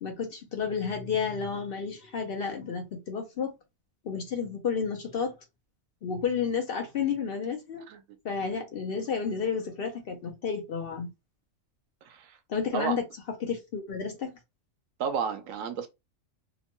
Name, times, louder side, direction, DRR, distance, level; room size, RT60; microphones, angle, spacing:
voice 1, 0.0-3.5 4.0-5.4 6.0-7.9 8.2-11.1 12.5-13.0 13.4-14.4, left 6 dB, 60° left, 0.6 m, -31 dB
voice 2, 12.0-12.4 12.7-13.0 15.0-15.9, right 7 dB, 80° right, 1.0 m, -31 dB
2.9 x 2.1 x 2.9 m
omnidirectional pair, 1.4 m